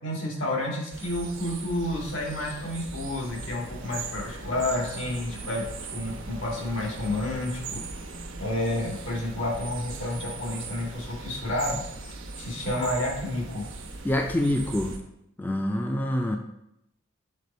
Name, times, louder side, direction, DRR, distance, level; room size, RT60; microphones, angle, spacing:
voice 1, 0.0-5.6 5.9-8.0 8.4-11.8 12.4-13.6, left 1 dB, 75° left, -2 dB, 1.9 m, -30 dB
sound 1, 0.9-15.0, right 3 dB, 85° right, 0.9 m, -39 dB
voice 2, 14.0-15.0 15.4-16.4, left 1 dB, 10° left, 3 dB, 0.4 m, -26 dB
6.7 x 4.1 x 4.2 m, 0.82 s
head